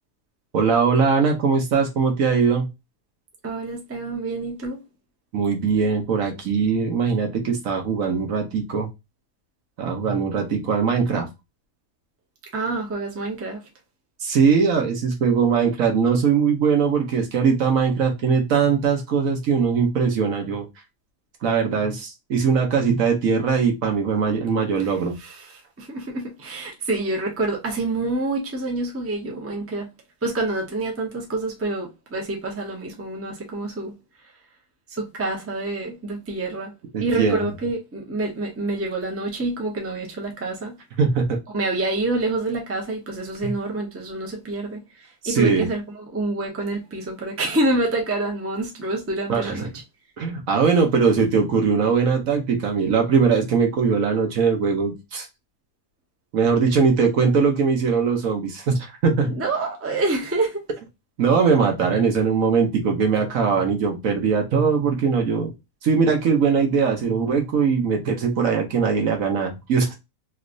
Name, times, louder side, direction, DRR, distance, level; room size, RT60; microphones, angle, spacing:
voice 1, 0.5-2.7 5.3-8.9 9.8-11.3 14.2-20.7 21.4-25.2 36.9-37.5 41.0-41.4 43.4-43.5 45.2-45.7 49.3-49.5 50.2-55.3 56.3-59.4 61.2-65.5 65.8-70.0, right 5 dB, 60° right, 1.2 m, -21 dB
voice 2, 3.4-4.8 12.5-13.6 24.8-24.9 25.2-29.9 30.2-33.9 34.9-36.7 37.0-40.8 41.5-49.7 59.2-60.6, right 2 dB, 10° right, 0.7 m, -27 dB
3.2 x 3.1 x 2.4 m
omnidirectional pair, 1.7 m